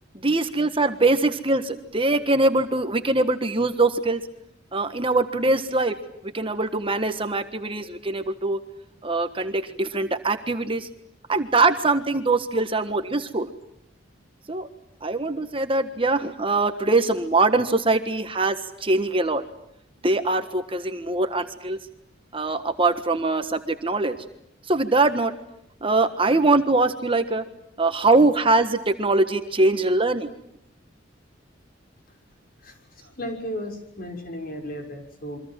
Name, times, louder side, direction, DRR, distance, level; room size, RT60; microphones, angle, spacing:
voice 1, 0.2-4.2 4.7-6.0 6.3-8.6 9.0-10.9 11.3-13.5 14.5-14.7 15.0-19.4 20.0-21.8 22.3-24.2 24.7-25.3 25.8-27.4 27.8-30.3, right 2 dB, 30° right, 8 dB, 1.5 m, -22 dB
voice 2, 32.6-35.4, equal, 50° left, 3 dB, 6.3 m, -35 dB
28.0 x 24.5 x 7.7 m, 0.78 s
head